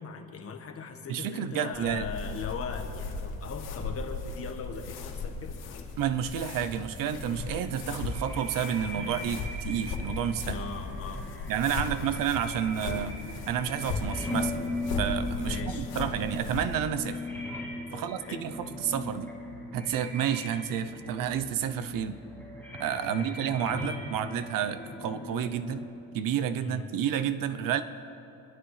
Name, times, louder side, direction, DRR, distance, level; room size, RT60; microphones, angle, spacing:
voice 1, 0.0-5.6 10.5-12.2 15.4-15.9 17.9-18.5 23.1-23.3 26.6-26.9, left 5 dB, 40° left, 5 dB, 1.4 m, -40 dB
voice 2, 1.1-2.1 6.0-10.6 11.5-13.2 13.5-14.7 15.0-17.2 17.9-19.3 19.7-22.2 22.8-25.9 26.1-27.8, right 9 dB, 60° right, 12 dB, 0.7 m, -30 dB
sound 1, 1.7-16.8, left 3 dB, 75° left, 2.2 m, -37 dB
sound 2, 6.8-25.9, left 1 dB, 5° left, 2.9 m, -39 dB
24.5 x 12.5 x 3.3 m, 2.8 s
cardioid pair, 130°, 37 cm